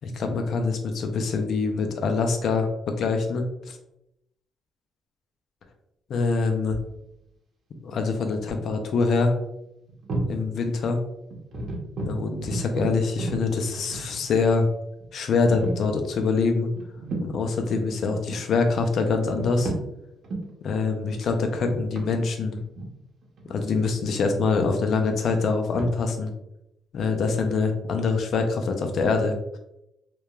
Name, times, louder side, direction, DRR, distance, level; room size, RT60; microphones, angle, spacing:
voice 1, 0.0-3.8 6.1-6.8 7.8-9.3 10.3-11.0 12.1-14.7 15.1-16.7 17.2-19.7 20.6-22.6 23.5-26.3 26.9-29.3, left 4 dB, 65° left, 5 dB, 0.4 m, -24 dB
sound 1, 6.7-7.0 8.8-8.9 9.1-9.3 9.9-10.4 10.8-10.9 11.3-14.5 15.0-15.1 15.5-15.9 16.7-17.4 17.8-18.4 19.1-19.9 20.2-20.5 21.1-24.1 24.5-25.8, right 2 dB, 60° right, 0.7 m, -33 dB
2.9 x 2.2 x 2.3 m, 0.84 s
cardioid pair, 90°, 0 cm